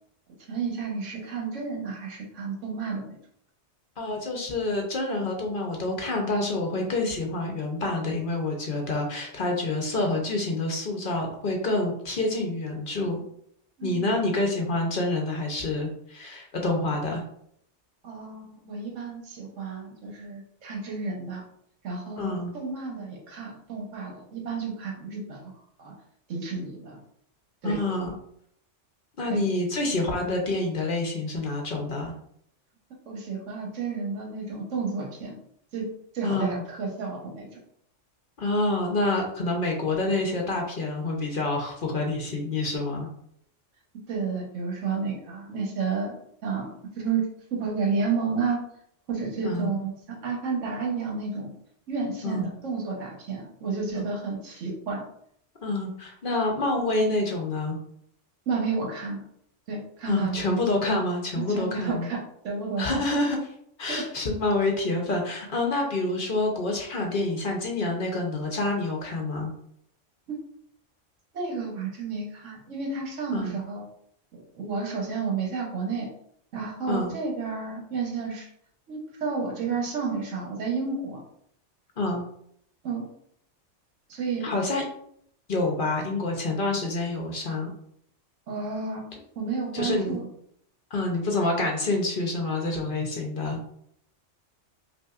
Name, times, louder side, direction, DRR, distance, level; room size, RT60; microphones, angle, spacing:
voice 1, 0.5-3.2 13.8-14.1 18.0-21.5 21.8-25.5 25.8-25.9 26.3-27.0 27.6-27.8 29.3-29.4 33.1-35.3 35.7-35.9 36.1-37.5 44.1-46.2 46.4-48.6 49.1-49.9 50.2-51.5 51.9-55.0 58.5-59.2 59.7-60.5 61.4-63.0 63.9-64.1 70.3-70.4 71.3-73.8 74.3-76.1 76.5-78.5 78.9-81.2 82.8-83.1 84.1-84.5 88.5-89.0 89.4-90.3, right 4 dB, 80° right, 0 dB, 1.3 m, -31 dB
voice 2, 4.0-13.2 13.8-17.2 22.2-22.5 27.6-28.1 29.2-32.1 36.2-36.6 38.4-43.1 49.4-49.7 52.2-52.5 53.9-54.1 55.6-57.8 60.1-62.1 62.8-63.4 63.8-69.5 73.3-73.6 76.9-77.1 82.0-82.2 84.4-84.8 85.5-87.7 89.7-90.2 90.9-93.6, left 2 dB, 50° left, 1 dB, 0.8 m, -27 dB
5.3 x 2.6 x 2.4 m, 0.68 s
omnidirectional pair, 1.3 m